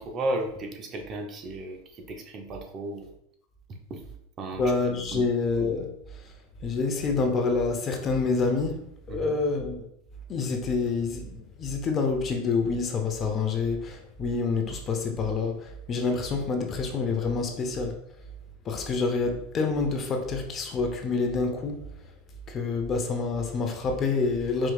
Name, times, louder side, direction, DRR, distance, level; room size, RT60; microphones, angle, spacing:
voice 1, 0.0-3.1 3.7-4.0 4.4-4.6 5.1-5.3 9.1-9.4, right 2 dB, 35° right, 3 dB, 0.7 m, -34 dB
voice 2, 4.5-6.2 6.6-8.8 9.1-9.8 10.3-18.0 18.6-21.8 22.5-24.7, left 4 dB, 35° left, 3 dB, 0.8 m, -27 dB
4.8 x 3.0 x 2.4 m, 0.72 s
hypercardioid pair, 105°, 0 cm